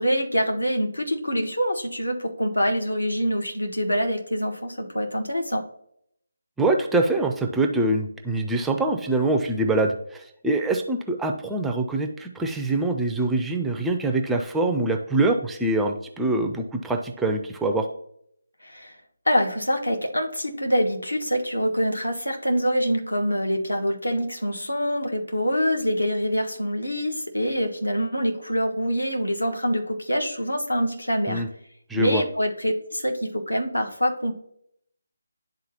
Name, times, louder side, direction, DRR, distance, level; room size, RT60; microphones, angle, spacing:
voice 1, 0.0-5.6 18.6-18.9 19.3-31.4 31.9-34.4, equal, 80° left, 3 dB, 1.2 m, -25 dB
voice 2, 6.6-17.9 31.3-31.5 31.9-32.2, right 2 dB, 5° right, 3 dB, 0.4 m, -24 dB
10.5 x 3.8 x 2.8 m, 0.69 s
figure-of-eight pair, 150°, 0 cm